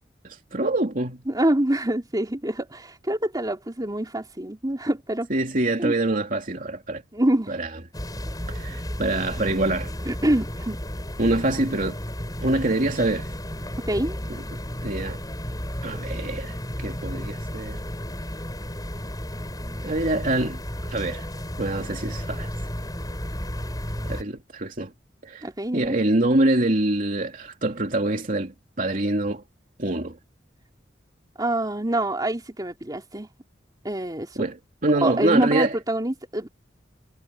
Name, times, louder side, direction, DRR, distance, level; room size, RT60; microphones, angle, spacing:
voice 1, 0.2-1.2 5.3-7.0 7.5-7.7 8.5-9.9 11.2-12.0 12.4-13.3 14.3-14.4 14.8-15.2 15.8-17.8 19.8-20.6 20.9-21.3 21.6-22.5 24.1-24.9 25.2-25.5 25.7-29.4 29.8-30.2 34.4-35.7, right 2 dB, 45° right, 2.9 m, -25 dB
voice 2, 1.3-5.3 5.8-5.9 7.1-7.6 10.0-10.8 13.8-14.2 25.4-26.0 31.4-33.3 33.8-34.4 35.0-36.5, right 1 dB, 20° right, 3.1 m, -26 dB
sound 1, 7.9-24.2, equal, 20° left, 6.9 m, -33 dB
head